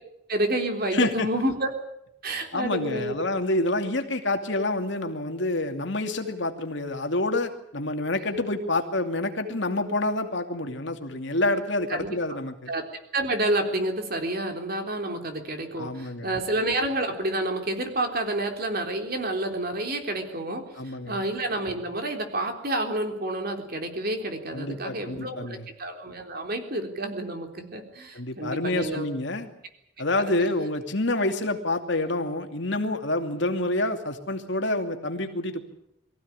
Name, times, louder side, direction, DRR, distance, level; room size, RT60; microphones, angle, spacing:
voice 1, 0.3-1.7 2.2-3.2 11.9-12.2 12.7-12.8 13.1-29.1 30.3-30.5, right 1 dB, 45° right, 5 dB, 3.7 m, -29 dB
voice 2, 0.9-1.3 2.5-12.7 15.8-16.4 20.8-21.2 24.5-25.7 28.1-29.5 30.0-35.6, left 2 dB, 60° left, 5 dB, 2.6 m, -28 dB
24.0 x 15.5 x 9.9 m, 0.80 s
head